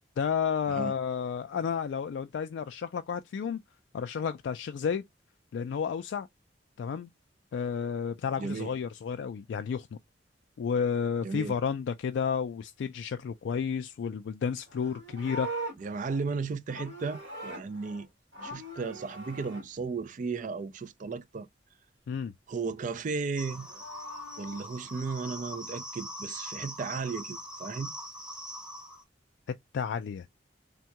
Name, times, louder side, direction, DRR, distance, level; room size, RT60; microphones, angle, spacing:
voice 1, 0.2-3.6 3.9-5.0 5.5-6.3 6.8-7.1 7.5-10.0 10.6-15.5 22.1-22.3 29.7-30.3, left 6 dB, 75° left, 0.3 m, -31 dB
voice 2, 8.4-8.7 11.2-11.5 15.8-18.1 18.4-21.5 22.5-23.7 24.4-27.9, right 4 dB, 45° right, 0.4 m, -35 dB
Livestock farm animals working animals, 14.6-18.0 18.3-19.6 23.4-24.6, right 1 dB, 70° right, 1.7 m, -41 dB
sound 1, 23.4-29.0, equal, 5° right, 0.8 m, -42 dB
3.5 x 2.2 x 2.8 m
head